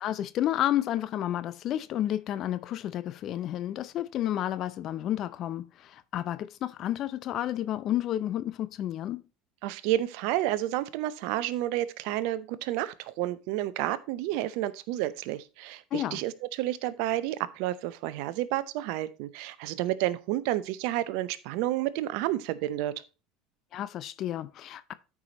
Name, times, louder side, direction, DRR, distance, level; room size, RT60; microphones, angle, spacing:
voice 1, 0.0-9.2 15.9-16.2 23.7-24.9, left 12 dB, 50° left, 0.5 m, -31 dB
voice 2, 9.6-22.9, right 14 dB, 65° right, 0.7 m, -30 dB
13.0 x 4.8 x 2.9 m
hypercardioid pair, 75°, 0 cm